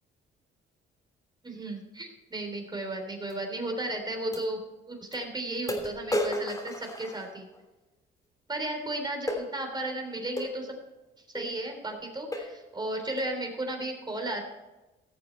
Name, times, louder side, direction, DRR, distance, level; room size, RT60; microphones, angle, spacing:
voice 1, 1.4-7.5 8.5-10.7 11.3-14.4, right 1 dB, 20° right, 3 dB, 3.6 m, -34 dB
sound 1, 3.3-3.4 4.3-4.4 5.1-5.2 5.7-7.6 9.3-9.5 10.4-10.6 11.3-11.5 11.9-12.0 12.3-12.6 13.2-13.4, left 1 dB, 15° left, 3.1 m, -33 dB
17.5 x 7.0 x 4.5 m, 1.1 s
cardioid pair, 90°, 20 cm